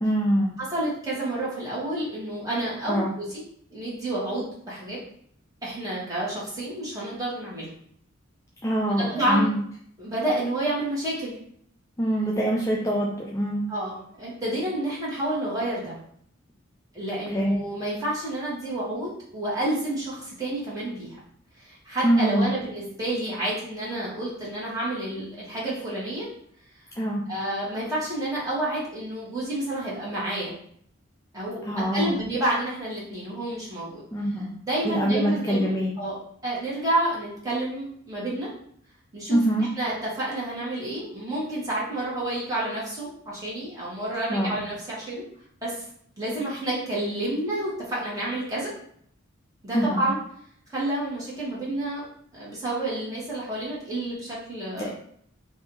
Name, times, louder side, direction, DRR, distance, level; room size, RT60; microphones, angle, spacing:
voice 1, 0.0-0.5 2.9-3.1 8.6-9.6 12.0-13.7 17.3-17.5 22.0-22.5 27.0-27.2 31.7-32.2 34.1-34.5 34.8-35.9 39.3-39.7 44.3-44.6 49.7-50.1 54.8-54.9, right 1 dB, 15° left, -2 dB, 0.3 m, -24 dB
voice 2, 0.6-3.4 3.7-5.0 5.6-7.7 9.0-9.5 10.0-11.3 13.7-16.0 16.9-21.2 21.6-26.3 27.3-30.5 31.3-34.0 34.6-36.1 36.4-38.5 39.1-45.2 45.6-45.8 46.2-48.7 49.6-50.2 50.7-52.0 52.3-54.9, right 1 dB, 20° right, -7 dB, 1.2 m, -29 dB
2.7 x 2.6 x 3.7 m, 0.64 s
head